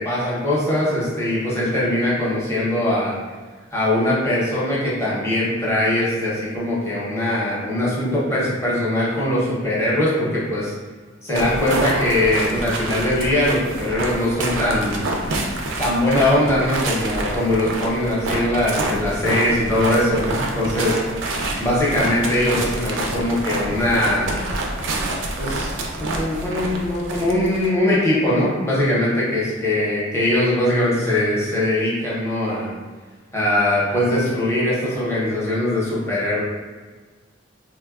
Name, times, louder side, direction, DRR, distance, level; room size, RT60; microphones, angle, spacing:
voice 1, 0.0-3.1 3.7-10.7 11.2-15.1 15.8-20.9 21.6-24.4 25.4-32.7 33.3-36.4, left 1 dB, 15° left, -7 dB, 0.7 m, -21 dB
sound 1, 11.3-27.7, right 2 dB, 75° right, 0.4 m, -27 dB
3.3 x 2.2 x 2.3 m, 1.4 s
head